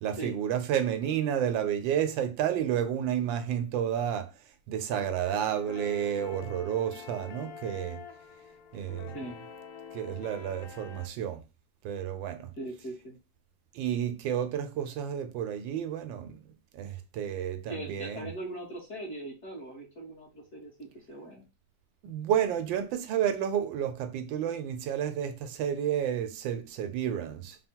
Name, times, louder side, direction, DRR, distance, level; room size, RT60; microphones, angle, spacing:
voice 1, 0.0-4.3 4.7-8.0 8.7-9.1 9.9-11.4 11.8-12.5 13.7-16.4 16.7-18.3 22.0-27.6, right 9 dB, 85° right, 1.3 m, -31 dB
sound 1, 4.9-11.1, left 6 dB, 85° left, 0.7 m, -46 dB
voice 2, 12.6-13.2 17.7-21.5, right 1 dB, 40° left, 1.4 m, -40 dB
3.5 x 2.2 x 4.3 m
omnidirectional pair, 2.0 m